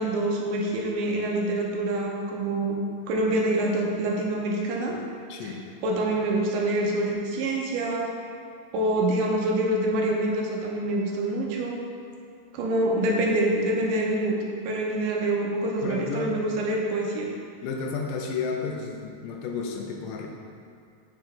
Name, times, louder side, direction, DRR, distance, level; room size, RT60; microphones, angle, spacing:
voice 1, 0.0-2.8 3.1-5.0 5.4-5.5 5.8-8.2 8.7-11.8 12.5-14.4 14.6-17.3, right 1 dB, 80° right, -1 dB, 2.4 m, -26 dB
voice 2, 5.3-5.7 15.8-16.5 17.6-20.3, left 4 dB, 85° left, 1 dB, 2.2 m, -32 dB
6.1 x 5.9 x 4.2 m, 2.4 s
omnidirectional pair, 3.9 m